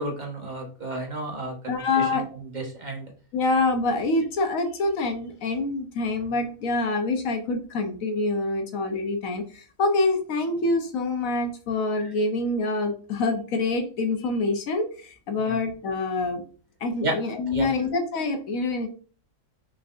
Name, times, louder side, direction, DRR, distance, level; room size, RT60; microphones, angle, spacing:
voice 1, 0.0-2.2 2.5-3.1 12.0-12.1 15.4-15.6 17.0-17.1 17.5-17.9, right 2 dB, 35° right, 1 dB, 1.1 m, -32 dB
voice 2, 1.7-2.2 3.3-16.4 16.8-18.9, left 3 dB, 70° left, 5 dB, 1.2 m, -26 dB
5.6 x 3.8 x 2.5 m, 0.40 s
omnidirectional pair, 1.5 m